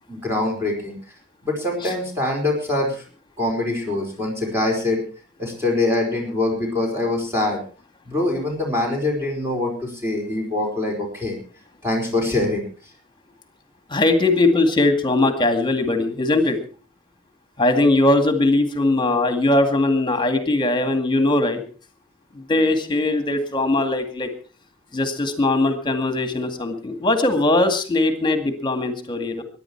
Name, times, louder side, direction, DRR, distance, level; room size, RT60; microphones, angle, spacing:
voice 1, 0.1-1.0 1.4-3.0 3.4-5.0 5.4-7.6 8.1-11.4 11.8-12.6, left 2 dB, 15° right, -1 dB, 4.8 m, -24 dB
voice 2, 13.9-16.6 17.6-21.6 22.3-24.3 24.9-29.4, left 2 dB, 25° left, 7 dB, 2.1 m, -20 dB
23.5 x 10.5 x 4.6 m, 0.38 s
head